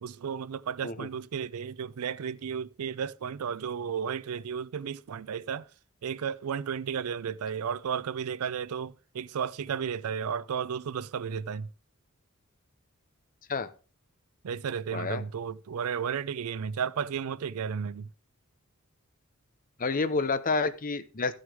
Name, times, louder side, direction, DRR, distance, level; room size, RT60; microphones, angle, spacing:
voice 1, 0.0-5.7 6.0-11.7 14.4-18.1, right 7 dB, 90° right, 0.4 m, -33 dB
voice 2, 14.9-15.2 19.8-21.3, left 4 dB, 40° left, 0.8 m, -29 dB
14.5 x 6.4 x 3.4 m
head